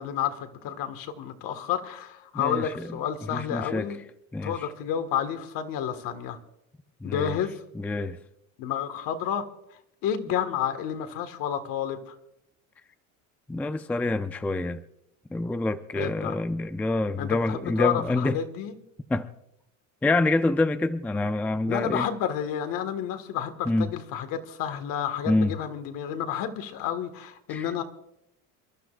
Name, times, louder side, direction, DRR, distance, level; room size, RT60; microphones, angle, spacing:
voice 1, 0.0-4.0 4.4-6.4 7.0-7.6 8.6-9.5 10.0-12.2 15.9-16.4 17.2-18.8 21.7-27.8, left 9 dB, 60° left, 8 dB, 1.8 m, -30 dB
voice 2, 2.3-2.9 3.3-3.9 4.3-4.6 7.0-7.4 7.7-8.2 13.5-14.8 15.3-18.4 19.1-19.3 20.0-22.1 23.7-23.9 25.2-25.5 27.5-27.7, left 2 dB, 5° left, 9 dB, 0.4 m, -26 dB
28.5 x 12.0 x 2.5 m, 0.79 s
cardioid pair, 130°, 38 cm